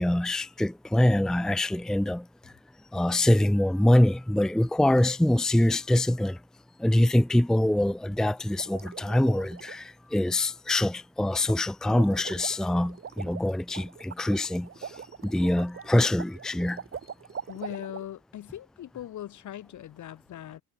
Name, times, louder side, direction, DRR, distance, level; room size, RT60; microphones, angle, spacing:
voice 1, 0.0-2.3 2.9-6.4 6.8-15.0 15.2-16.8, left 1 dB, ahead, 0.6 m, -24 dB
sound 1, 8.6-9.8 11.4-11.6 11.8-18.1, right 7 dB, 45° right, 3.3 m, -42 dB
voice 2, 17.5-20.6, left 12 dB, 75° left, 6.9 m, -40 dB
cardioid pair, 90°, 30 cm